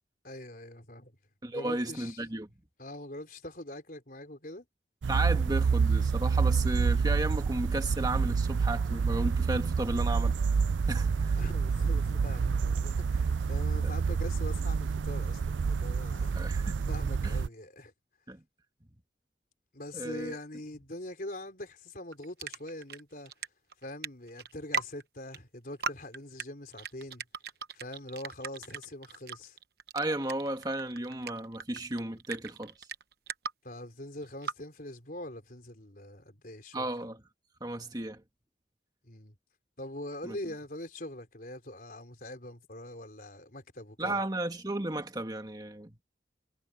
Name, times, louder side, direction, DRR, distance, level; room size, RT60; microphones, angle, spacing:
voice 1, 0.2-1.2 1.5-2.2 2.8-4.7 11.4-16.6 16.9-17.9 19.7-23.3 23.8-27.3 27.7-29.6 33.6-36.9 39.0-39.3 39.8-44.2, left 1 dB, 50° left, 4.3 m, -43 dB
voice 2, 1.4-2.5 5.1-10.4 10.9-11.4 13.8-13.9 16.4-16.8 17.2-17.3 18.3-18.4 19.9-20.4 29.9-32.7 36.7-37.2 37.6-38.2 40.2-40.4 44.0-45.9, right 1 dB, 20° right, 1.9 m, -34 dB
sound 1, 5.0-17.5, right 5 dB, 90° right, 0.4 m, -28 dB
sound 2, 22.1-23.0 23.3-23.5 23.7-25.0 25.3-25.4 25.8-26.4 26.7-33.5 34.2-34.5, right 5 dB, 60° right, 1.0 m, -37 dB
head